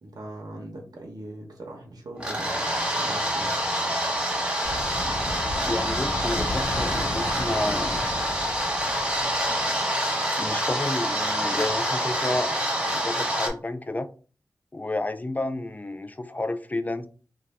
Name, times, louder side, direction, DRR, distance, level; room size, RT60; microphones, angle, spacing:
voice 1, 0.0-3.5, right 1 dB, 70° right, 0.8 m, -40 dB
sound 1, 2.2-13.5, equal, 15° right, 0.9 m, -27 dB
sound 2, 4.6-9.8, left 1 dB, 75° left, 1.2 m, -33 dB
voice 2, 5.7-8.0 10.4-14.1 14.7-17.1, left 2 dB, 25° left, 0.3 m, -31 dB
2.6 x 2.2 x 3.2 m
cardioid pair, 50°, 7 cm